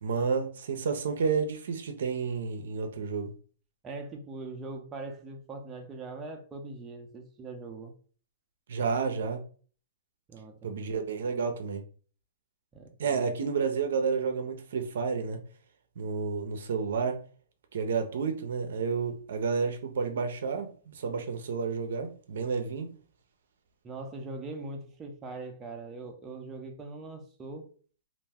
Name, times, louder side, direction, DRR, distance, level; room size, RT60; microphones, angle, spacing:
voice 1, 0.0-3.3 8.7-9.4 10.6-11.8 13.0-15.4 16.0-17.2 17.7-22.9, right 5 dB, 75° right, 0.5 m, -30 dB
voice 2, 3.8-7.9 10.3-10.7 12.7-13.4 23.8-27.7, right 3 dB, 20° right, 0.5 m, -41 dB
2.4 x 2.2 x 3.3 m
hypercardioid pair, 130°, 0 cm